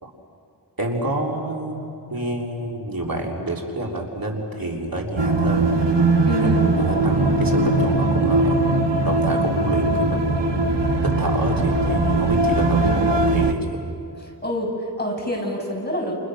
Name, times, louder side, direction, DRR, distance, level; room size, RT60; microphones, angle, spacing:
voice 1, 0.8-1.8 2.1-5.8 6.4-8.6 9.0-10.4 11.0-13.8, right 1 dB, 55° right, -1 dB, 3.5 m, -28 dB
sound 1, 5.2-13.5, right 2 dB, 90° right, 1.4 m, -20 dB
voice 2, 6.2-6.6 12.8-13.0 14.2-16.1, equal, 25° left, -1 dB, 7.1 m, -27 dB
30.0 x 29.0 x 6.4 m, 2.5 s
wide cardioid pair, 65°, 41 cm